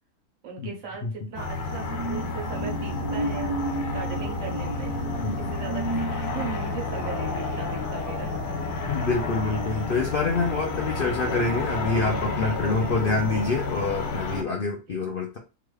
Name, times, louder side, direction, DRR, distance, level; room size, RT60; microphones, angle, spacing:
voice 1, 0.4-4.9 5.4-8.5 12.4-13.3 14.9-15.0, right 6 dB, 60° right, 1 dB, 1.1 m, -39 dB
sound 1, 0.9-9.9 10.2-10.5, right 1 dB, 20° right, 0.7 m, -35 dB
sound 2, 1.3-14.4, left 3 dB, 90° left, 1.1 m, -30 dB
voice 2, 5.2-5.5 8.8-15.4, left 3 dB, 65° left, 1 dB, 0.5 m, -26 dB
2.9 x 2.4 x 3.1 m, 0.32 s
omnidirectional pair, 1.6 m